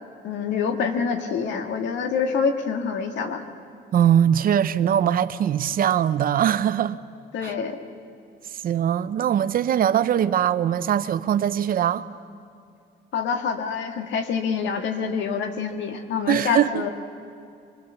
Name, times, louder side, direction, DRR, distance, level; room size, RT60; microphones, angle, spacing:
voice 1, 0.2-3.4 7.3-7.8 13.1-16.9, left 6 dB, 75° left, 1.9 m, -26 dB
voice 2, 3.9-7.0 7.4-7.5 8.6-12.1 16.3-16.8, right 10 dB, 50° right, 0.6 m, -21 dB
24.5 x 21.0 x 7.0 m
cardioid pair, 135°, 19 cm